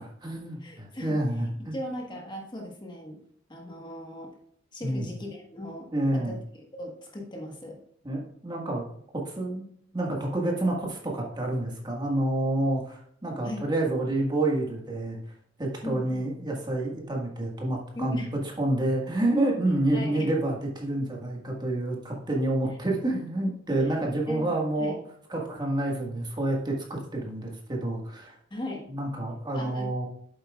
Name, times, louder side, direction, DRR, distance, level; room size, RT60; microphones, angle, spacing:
voice 1, 0.0-1.8 4.8-5.1 5.9-6.4 8.0-8.9 9.1-9.6 9.9-15.2 15.6-18.3 18.6-25.0 25.3-28.3 28.9-30.0, right 1 dB, 25° right, -1 dB, 1.6 m, -28 dB
voice 2, 0.6-1.2 1.7-3.2 3.5-4.3 4.7-6.4 6.7-7.8 13.4-13.7 15.8-16.1 17.9-18.3 19.9-20.3 24.3-24.5 24.8-25.0 28.5-28.9 29.5-29.9, left 1 dB, 25° left, 0 dB, 1.3 m, -37 dB
8.7 x 7.7 x 2.4 m, 0.66 s
head